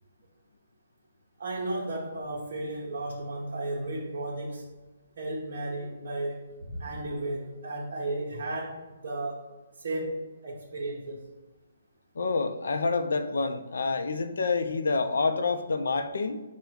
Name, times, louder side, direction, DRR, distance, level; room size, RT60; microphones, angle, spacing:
voice 1, 1.4-4.6 5.2-9.5 9.8-11.2, right 2 dB, 55° right, -3 dB, 0.8 m, -34 dB
voice 2, 12.2-16.4, left 4 dB, 75° left, 8 dB, 0.5 m, -28 dB
5.2 x 2.2 x 4.6 m, 1.2 s
hypercardioid pair, 165°, 0 cm